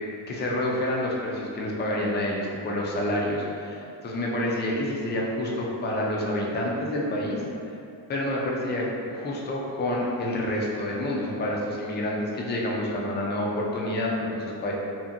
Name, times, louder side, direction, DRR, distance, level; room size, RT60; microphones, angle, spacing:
voice 1, 0.3-7.4 8.1-14.7, left 1 dB, 25° left, -3 dB, 0.4 m, -28 dB
2.7 x 2.5 x 2.5 m, 2.6 s
cardioid pair, 95°, 47 cm